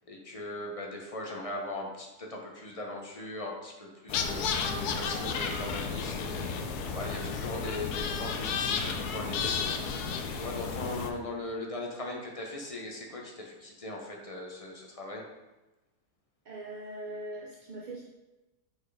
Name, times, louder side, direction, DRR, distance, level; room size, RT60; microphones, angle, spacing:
voice 1, 0.1-6.5 6.9-9.8 10.4-15.3, left 2 dB, 30° left, 0 dB, 0.7 m, -39 dB
sound 1, 4.1-11.1, left 5 dB, 80° left, 1.2 m, -32 dB
voice 2, 16.5-18.0, right 1 dB, 50° right, -4 dB, 0.5 m, -41 dB
5.4 x 4.3 x 4.8 m, 1.1 s
omnidirectional pair, 1.7 m